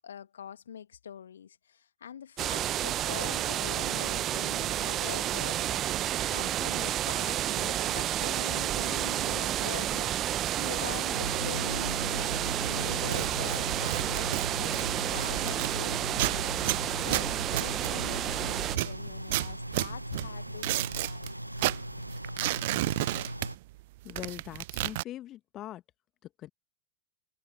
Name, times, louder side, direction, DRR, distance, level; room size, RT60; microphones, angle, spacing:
voice 1, 0.0-21.3, left 8 dB, 65° left, 2.0 m, -44 dB
sound 1, 2.4-18.8, right 12 dB, 30° right, 1.0 m, -30 dB
sound 2, 11.1-23.6, right 1 dB, 90° right, 0.9 m, -39 dB
sound 3, 13.0-15.8 16.1-18.3 18.7-21.3 21.6-23.8 24.1-25.0, right 19 dB, 50° right, 0.3 m, -32 dB
voice 2, 24.0-25.8 26.2-26.5, left 13 dB, 35° left, 1.5 m, -42 dB
figure-of-eight pair, 90°, 0 cm